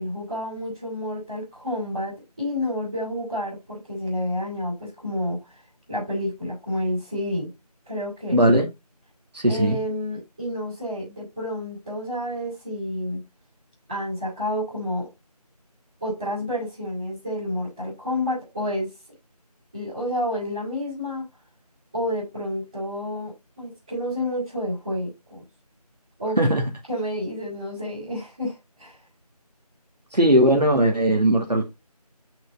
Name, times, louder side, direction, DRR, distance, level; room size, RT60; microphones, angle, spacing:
voice 1, 0.0-5.4 5.9-7.5 7.8-8.5 9.5-13.2 13.9-15.1 16.0-18.9 19.7-21.2 21.9-25.4 26.2-26.4 26.9-29.0, left 1 dB, 10° right, 2.9 m, -29 dB
voice 2, 8.3-8.7 9.3-9.8 26.4-26.6 30.1-31.7, right 1 dB, 85° right, 2.1 m, -19 dB
6.1 x 5.4 x 4.0 m
figure-of-eight pair, 175°, 20 cm